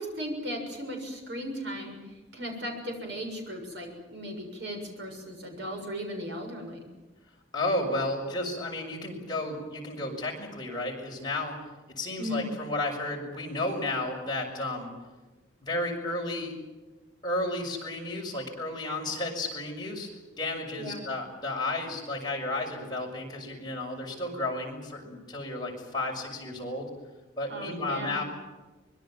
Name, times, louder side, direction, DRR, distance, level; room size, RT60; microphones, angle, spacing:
voice 1, 0.0-2.0 2.3-6.9 12.2-12.5 20.8-21.1 27.5-28.2, equal, 60° right, 2 dB, 7.1 m, -36 dB
voice 2, 7.5-11.6 12.0-14.9 15.6-16.5 17.2-20.1 20.4-26.9 27.4-28.2, left 2 dB, 20° left, -1 dB, 6.3 m, -32 dB
25.0 x 22.0 x 7.7 m, 1.2 s
head